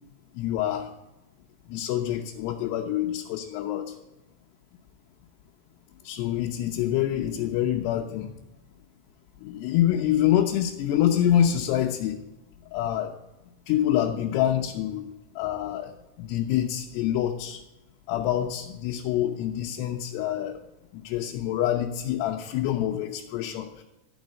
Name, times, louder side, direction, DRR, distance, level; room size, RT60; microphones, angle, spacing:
voice 1, 0.4-0.9 1.7-3.9 6.0-8.3 9.4-12.2 12.7-13.1 13.7-15.0 15.4-15.9 16.2-17.6 18.1-20.6 21.0-23.8, left 11 dB, 80° left, 1 dB, 2.8 m, -26 dB
12.0 x 5.2 x 7.4 m, 0.98 s
omnidirectional pair, 4.8 m